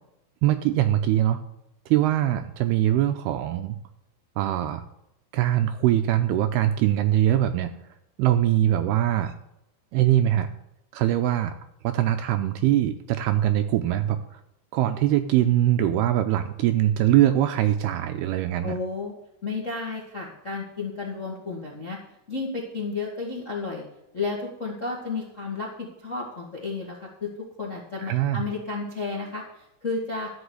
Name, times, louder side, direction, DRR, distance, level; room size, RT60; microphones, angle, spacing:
voice 1, 0.4-1.4 1.9-3.8 4.4-4.8 5.3-7.7 8.2-9.3 9.9-10.5 10.9-11.5 11.8-14.4 14.7-18.8 28.0-28.4, right 12 dB, 80° right, 8 dB, 2.4 m, -22 dB
voice 2, 18.6-19.1 19.4-22.0 22.3-23.8 24.1-30.3, left 3 dB, 40° left, -2 dB, 1.0 m, -32 dB
13.0 x 6.2 x 8.2 m, 0.84 s
omnidirectional pair, 5.1 m